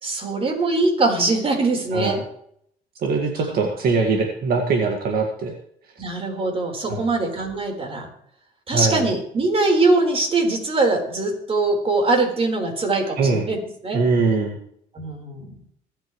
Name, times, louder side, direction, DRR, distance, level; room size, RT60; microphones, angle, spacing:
voice 1, 0.0-2.2 6.0-8.1 8.7-13.6 13.8-14.0 14.9-15.5, right 2 dB, 35° right, 2 dB, 4.3 m, -22 dB
voice 2, 1.9-2.2 3.0-5.6 6.9-7.0 8.7-9.1 13.2-13.5 13.9-14.6, right 4 dB, 65° right, 2 dB, 1.9 m, -22 dB
26.0 x 8.8 x 3.2 m, 0.69 s
cardioid pair, 110°, 17 cm